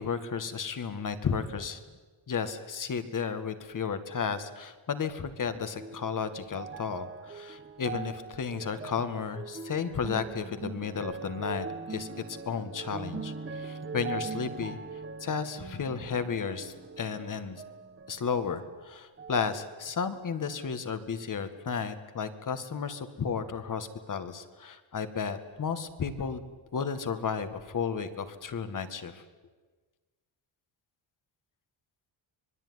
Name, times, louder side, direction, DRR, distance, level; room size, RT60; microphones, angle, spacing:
voice 1, 0.0-1.8 2.3-14.8 15.2-17.6 18.1-29.2, left 6 dB, 40° left, 9 dB, 1.9 m, -33 dB
sound 1, 5.4-18.9 19.2-20.1 20.8-20.9, right 4 dB, 25° right, 1.5 m, -42 dB
25.5 x 21.0 x 9.7 m, 1.3 s
wide cardioid pair, 150°, 47 cm